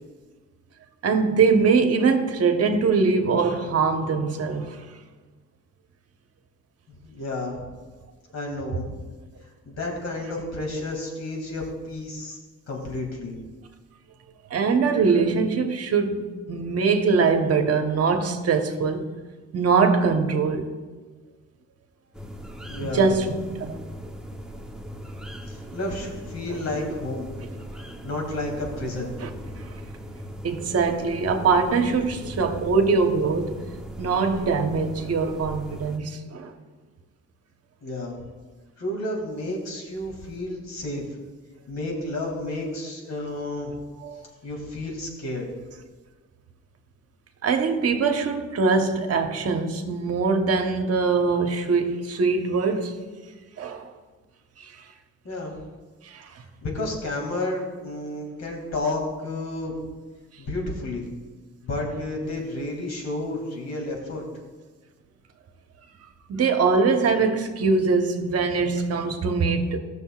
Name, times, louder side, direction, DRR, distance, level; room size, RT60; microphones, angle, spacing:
voice 1, 1.0-4.9 14.5-19.1 19.5-20.7 22.8-23.3 23.6-23.8 26.5-26.6 29.2-29.3 29.6-29.7 30.4-33.6 34.0-36.5 44.0-44.2 47.4-52.9 53.6-53.9 54.6-54.7 56.0-56.3 66.3-69.8, right 4 dB, 55° right, 1.1 m, -22 dB
voice 2, 6.9-7.7 8.3-9.0 9.7-12.4 12.7-13.5 22.7-23.1 25.5-27.3 28.0-29.7 32.3-32.5 37.8-38.2 38.8-41.0 41.7-43.8 44.4-45.5 55.2-55.6 56.6-59.7 60.4-61.1 61.6-64.2, left 2 dB, 60° left, 2.4 m, -31 dB
sound 1, 22.1-36.0, equal, ahead, 0.8 m, -39 dB
14.5 x 6.5 x 2.4 m
cardioid pair, 90°, 30 cm